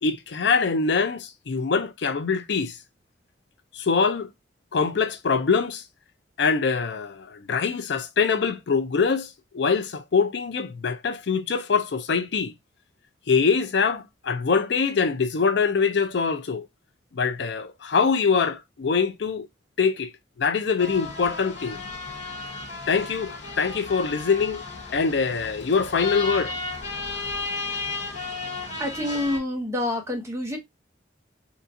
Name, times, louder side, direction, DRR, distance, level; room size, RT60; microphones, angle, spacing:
voice 1, 0.0-2.8 3.7-4.3 4.7-5.8 6.4-12.5 13.3-16.7 17.1-19.5 19.8-20.1 20.4-21.8 22.9-24.6 24.9-26.5, left 5 dB, 65° left, 0.5 m, -24 dB
sound 1, 20.8-29.4, left 3 dB, 40° left, 1.2 m, -34 dB
voice 2, 28.8-30.6, left 1 dB, 15° right, 0.9 m, -27 dB
3.7 x 2.3 x 2.6 m
head